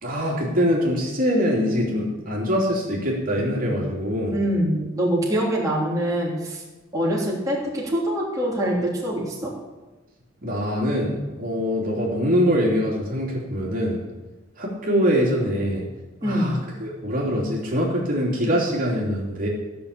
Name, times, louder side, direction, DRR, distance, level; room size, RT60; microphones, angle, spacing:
voice 1, 0.0-4.4 10.4-14.0 14.6-15.8 16.2-19.5, equal, 45° right, -3 dB, 3.2 m, -23 dB
voice 2, 4.3-6.6 6.9-9.5 16.2-16.5, equal, 20° right, -5 dB, 3.3 m, -24 dB
15.5 x 6.8 x 8.5 m, 1.2 s
head